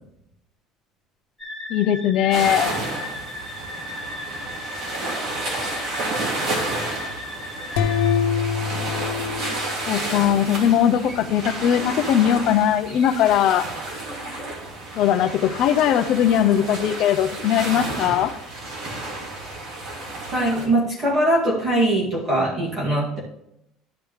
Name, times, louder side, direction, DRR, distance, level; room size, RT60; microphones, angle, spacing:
sound 1, 1.4-8.1, left 1 dB, 5° left, 2.7 m, -36 dB
voice 1, 1.7-2.8 9.9-13.7 15.0-18.3, left 10 dB, 45° left, 11 dB, 0.6 m, -20 dB
sound 2, 2.3-20.7, right 2 dB, 45° right, 2.5 m, -31 dB
sound 3, 7.8-10.5, left 7 dB, 75° left, 1.0 m, -25 dB
voice 2, 20.3-23.2, right 1 dB, 25° right, -4 dB, 2.4 m, -21 dB
12.0 x 5.2 x 3.2 m, 0.78 s
cardioid pair, 175°, 0 cm